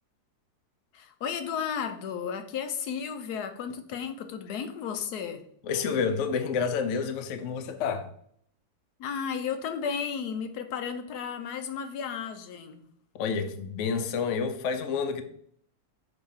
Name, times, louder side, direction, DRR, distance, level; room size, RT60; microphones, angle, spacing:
voice 1, 0.9-5.4 9.0-12.8, left 7 dB, 70° left, 1.1 m, -33 dB
voice 2, 5.6-8.1 13.1-15.2, left 5 dB, 90° left, 0.6 m, -29 dB
6.2 x 3.0 x 5.5 m
omnidirectional pair, 2.0 m